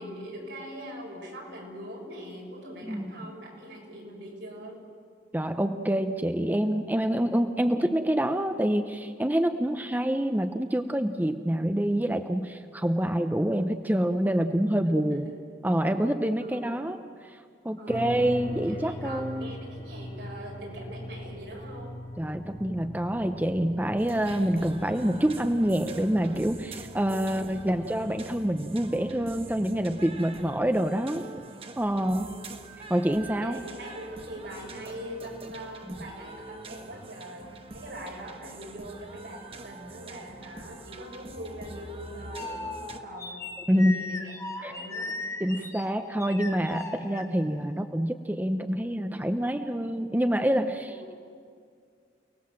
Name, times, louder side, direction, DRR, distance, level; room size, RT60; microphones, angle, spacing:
voice 1, 0.0-4.8 14.8-15.4 16.4-16.8 17.8-18.2 18.6-22.0 32.1-32.5 33.4-43.4 43.7-45.1, equal, 70° right, -1 dB, 6.1 m, -42 dB
voice 2, 5.3-15.3 15.6-19.5 22.2-31.2 31.8-32.3 32.9-33.6 35.9-36.0 43.7-43.9 44.6-44.7 45.4-51.1, equal, 10° right, 8 dB, 0.7 m, -27 dB
sound 1, 17.9-30.2, left 1 dB, 45° left, 1.8 m, -42 dB
sound 2, 24.0-43.0, right 3 dB, 35° right, 1.2 m, -45 dB
sound 3, 41.3-47.7, left 3 dB, 15° left, 1.3 m, -39 dB
29.5 x 19.0 x 7.6 m, 2.2 s
head